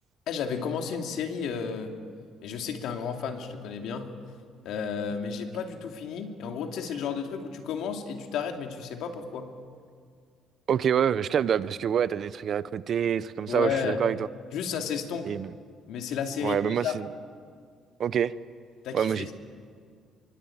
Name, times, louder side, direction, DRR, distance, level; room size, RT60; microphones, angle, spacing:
voice 1, 0.3-1.9 2.4-4.1 4.6-9.5 13.5-14.0 14.5-15.3 15.9-16.9 18.8-19.3, left 6 dB, 75° left, 4 dB, 2.7 m, -32 dB
voice 2, 10.7-14.3 15.2-15.5 16.4-17.1 18.0-18.3 18.9-19.3, right 8 dB, 50° right, 16 dB, 0.7 m, -26 dB
26.5 x 24.0 x 8.8 m, 2.1 s
cardioid pair, 120°, 0 cm